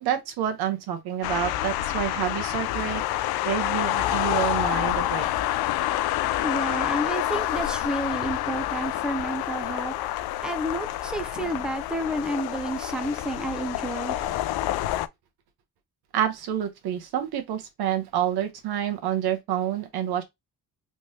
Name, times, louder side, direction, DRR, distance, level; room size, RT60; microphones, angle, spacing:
voice 1, 0.0-3.0 3.4-5.3 16.1-20.2, right 10 dB, 80° right, 1.0 m, -28 dB
sound 1, 1.2-15.1, left 14 dB, 75° left, 0.5 m, -28 dB
voice 2, 6.4-14.2, right 1 dB, ahead, 0.6 m, -30 dB
3.4 x 3.1 x 2.8 m
cardioid pair, 80°, 38 cm